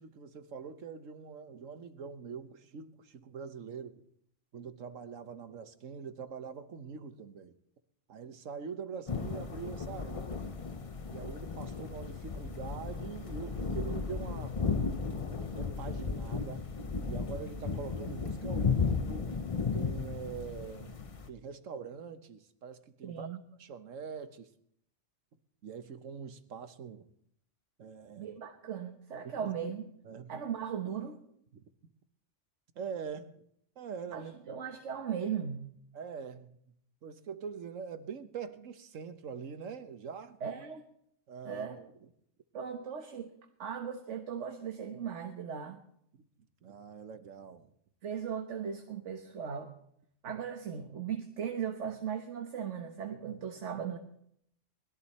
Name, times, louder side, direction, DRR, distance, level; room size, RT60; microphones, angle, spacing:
voice 1, 0.0-4.0 4.5-7.6 8.1-10.4 11.1-14.6 15.6-16.6 17.1-19.3 19.7-21.0 21.3-24.5 25.6-27.0 27.8-28.4 29.2-29.5 30.0-30.3 31.5-31.6 32.7-33.4 33.8-34.3 35.9-36.6 37.0-40.4 41.3-41.9 46.6-47.7, right 6 dB, 85° right, 10 dB, 1.5 m, -44 dB
sound 1, 9.1-21.3, left 5 dB, 30° left, 0.7 m, -35 dB
voice 2, 23.0-23.4 28.2-29.8 30.3-31.2 34.1-35.7 40.4-40.9 41.4-41.8 42.5-43.3 43.6-45.8 48.0-49.7 50.2-54.0, right 7 dB, 70° right, 5 dB, 1.5 m, -38 dB
20.5 x 13.0 x 4.3 m, 0.72 s
omnidirectional pair, 1.3 m